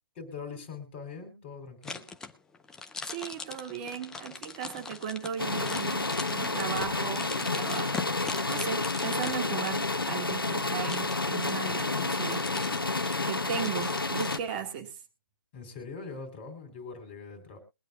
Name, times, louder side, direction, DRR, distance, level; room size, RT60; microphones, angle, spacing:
voice 1, 0.2-2.1 15.5-17.6, left 5 dB, 25° left, 8 dB, 3.7 m, -42 dB
sound 1, 1.8-14.4, left 4 dB, 5° left, 0.5 m, -42 dB
voice 2, 3.0-7.9 8.5-12.7 13.2-15.0, right 8 dB, 25° right, 6 dB, 1.9 m, -37 dB
sound 2, 5.4-14.4, left 3 dB, 85° left, 1.0 m, -30 dB
22.0 x 9.2 x 2.4 m, 0.29 s
figure-of-eight pair, 145°, 12 cm